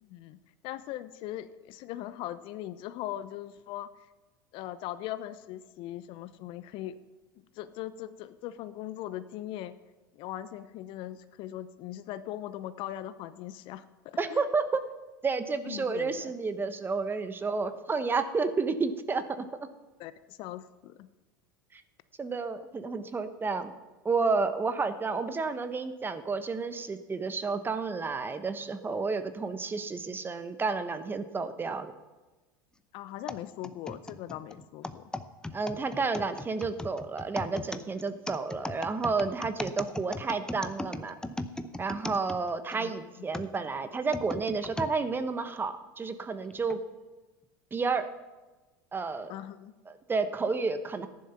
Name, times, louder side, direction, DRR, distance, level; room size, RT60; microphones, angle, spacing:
voice 1, 0.0-3.9 4.5-7.0 7.5-9.7 10.1-14.4 15.7-16.3 20.0-21.1 32.9-35.1 42.8-43.1 49.3-49.7, left 13 dB, 50° left, 14 dB, 0.7 m, -40 dB
voice 2, 14.2-14.8 15.2-19.5 21.7-21.8 22.2-23.7 24.0-31.9 35.5-41.2 41.8-46.8 47.7-48.1 48.9-49.3 49.9-51.1, right 4 dB, 20° right, 10 dB, 1.1 m, -31 dB
sound 1, 33.3-42.8 43.3-44.9 45.6-45.7 46.5-46.8, left 2 dB, 5° left, 0.8 m, -38 dB
14.5 x 10.5 x 5.8 m, 1.2 s
hypercardioid pair, 85°, 11 cm